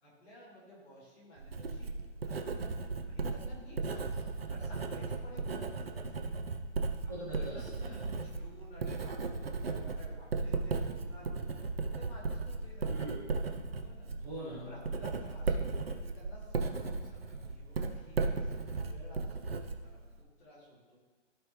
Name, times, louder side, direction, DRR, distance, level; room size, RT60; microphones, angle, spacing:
voice 1, 0.0-2.5 3.0-6.3 7.0-7.6 7.9-11.5 11.8-12.9 13.8-14.1 14.6-21.0, equal, 10° left, -12 dB, 2.5 m, -54 dB
Writing, 1.4-20.2, right 3 dB, 50° right, 0.8 m, -36 dB
voice 2, 7.1-8.0 12.8-13.2 14.2-14.7, right 2 dB, 15° right, -12 dB, 1.8 m, -42 dB
15.0 x 5.2 x 3.1 m, 1.3 s
hypercardioid pair, 175°, 37 cm